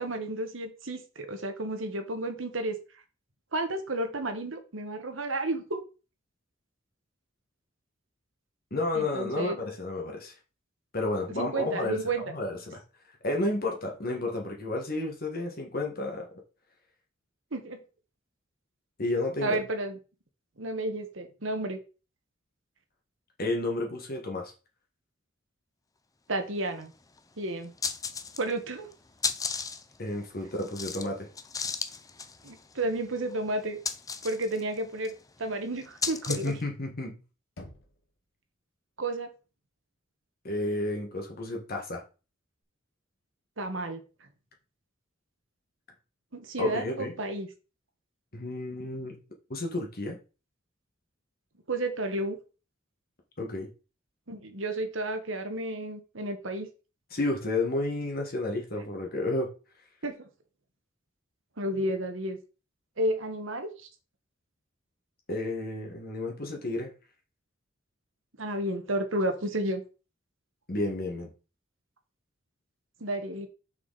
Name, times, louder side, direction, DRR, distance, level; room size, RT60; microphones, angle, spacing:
voice 1, 0.0-2.7 3.5-5.8 8.9-9.6 11.4-12.2 17.5-17.8 19.4-20.0 20.6-21.8 26.3-26.9 27.4-27.7 28.4-28.9 32.4-33.8 34.2-35.1 35.4-36.5 39.0-39.3 43.6-44.0 46.3-47.5 51.7-52.4 54.3-56.7 60.0-60.1 61.6-62.4 63.0-63.7 68.4-69.8 73.0-73.5, right 1 dB, 70° right, 1.5 m, -31 dB
voice 2, 8.7-10.3 10.9-12.0 12.3-12.8 13.2-16.3 19.0-19.6 23.4-24.5 30.0-31.3 36.3-37.2 40.4-42.0 46.6-47.1 48.3-49.1 49.5-50.2 53.4-53.7 57.1-59.5 65.3-66.9 70.7-71.3, left 2 dB, 50° left, 1.8 m, -31 dB
sound 1, 26.8-26.9 27.2-27.3 27.6-28.6 28.9-36.6, left 5 dB, 15° left, 0.5 m, -35 dB
Knock, 37.6-38.5, left 1 dB, 65° left, 2.0 m, -49 dB
6.3 x 6.3 x 4.1 m
head